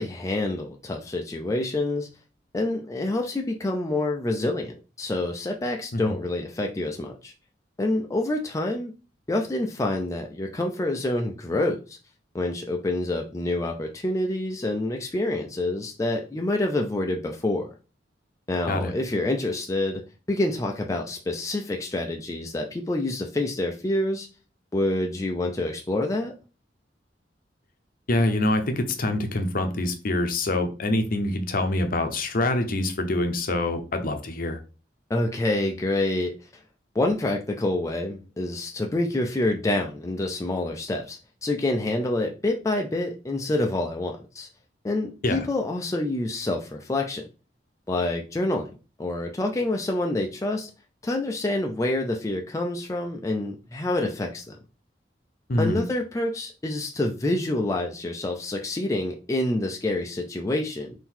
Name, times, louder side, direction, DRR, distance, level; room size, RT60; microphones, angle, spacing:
voice 1, 0.0-2.1 2.5-7.3 7.8-8.9 9.3-12.0 12.3-17.8 18.5-24.3 24.7-26.3 35.1-36.3 36.9-44.5 44.8-47.2 47.9-48.7 49.0-50.7 51.0-54.6 55.6-60.9, left 2 dB, 20° left, 0.4 m, -27 dB
voice 2, 28.1-34.6 45.2-45.4 55.5-55.8, left 2 dB, 50° left, 0.7 m, -25 dB
3.8 x 2.7 x 4.4 m
head